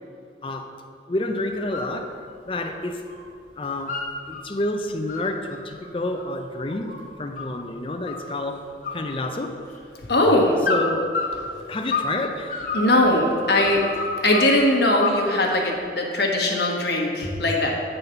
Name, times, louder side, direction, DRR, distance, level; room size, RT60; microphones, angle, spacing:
voice 1, 0.4-0.7 1.1-2.1 2.4-3.0 3.6-4.0 4.3-8.7 8.9-9.6 10.7-11.1 11.7-12.6, left 2 dB, 30° left, 5 dB, 0.5 m, -29 dB
sound 1, 1.5-1.9 2.3-3.2 3.5-4.4 4.9-7.6 8.0-8.5 8.8-9.8 10.6-12.2 12.5-14.5 15.0-15.7, left 4 dB, 50° left, 1.2 m, -30 dB
voice 2, 10.0-10.6 12.7-13.8 14.2-17.7, left 1 dB, 70° left, 0 dB, 1.2 m, -20 dB
9.1 x 4.0 x 5.6 m, 2.5 s
head